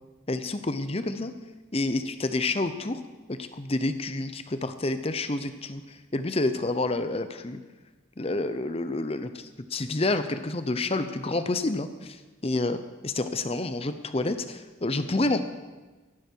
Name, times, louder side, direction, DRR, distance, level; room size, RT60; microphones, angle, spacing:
voice 1, 0.3-1.3 1.7-3.0 3.3-7.6 8.2-15.4, left 2 dB, 30° left, 10 dB, 0.7 m, -29 dB
14.5 x 12.0 x 4.6 m, 1.3 s
head